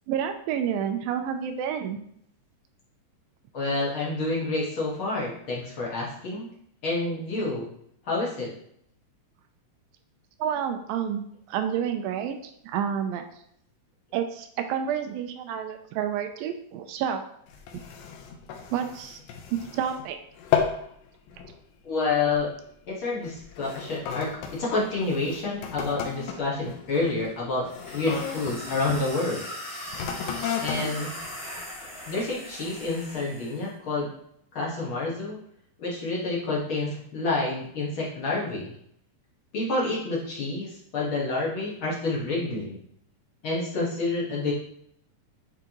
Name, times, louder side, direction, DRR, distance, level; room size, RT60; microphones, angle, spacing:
voice 1, 0.1-2.0 10.4-13.2 14.1-17.2 17.7-17.8 18.7-19.2 19.5-20.2 30.8-30.9, right 8 dB, 85° right, 6 dB, 2.3 m, -29 dB
voice 2, 3.5-6.5 6.8-7.6 8.0-8.5 21.8-22.5 22.9-27.7 27.9-29.4 30.6-31.1 32.1-34.1 34.5-35.4 35.8-38.7 39.5-42.8 43.4-44.5, left 3 dB, 50° left, -5 dB, 1.6 m, -28 dB
sound 1, 17.5-20.1 20.4-20.9 21.3-21.6 22.3-22.5 23.2-29.1 29.8-32.2 32.8-32.9, left 7 dB, 80° left, 2.5 m, -34 dB
sound 2, 27.7-33.6, equal, 5° right, 1.1 m, -39 dB
9.8 x 3.5 x 3.0 m, 0.69 s
omnidirectional pair, 4.1 m